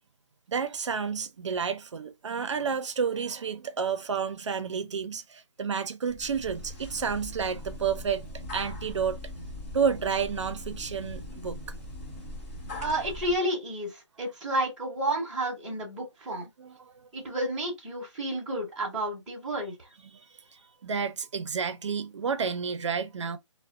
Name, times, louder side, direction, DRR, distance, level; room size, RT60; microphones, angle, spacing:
voice 1, 0.5-9.2 9.7-11.6 16.6-17.1 20.0-23.4, right 6 dB, 75° right, 0.5 m, -31 dB
sound 1, 6.1-13.4, left 1 dB, 25° left, 0.9 m, -40 dB
voice 2, 12.8-13.9 14.2-16.5 17.1-19.7, right 1 dB, ahead, 0.7 m, -31 dB
2.4 x 2.0 x 2.5 m
hypercardioid pair, 175°, 16 cm